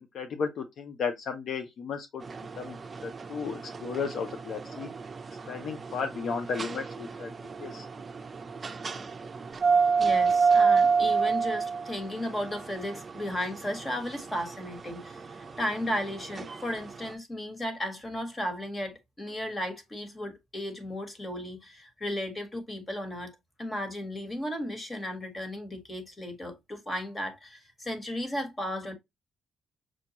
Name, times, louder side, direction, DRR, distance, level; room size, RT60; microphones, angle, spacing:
voice 1, 0.0-2.2 2.6-4.9 5.5-7.3 7.6-7.9, left 5 dB, 65° left, 0.6 m, -34 dB
sound 1, 2.2-17.1, right 5 dB, 30° right, 0.5 m, -30 dB
voice 2, 10.0-23.3 23.6-28.9, left 1 dB, 20° left, 1.5 m, -35 dB
6.2 x 2.3 x 2.9 m
cardioid pair, 90°, 0 cm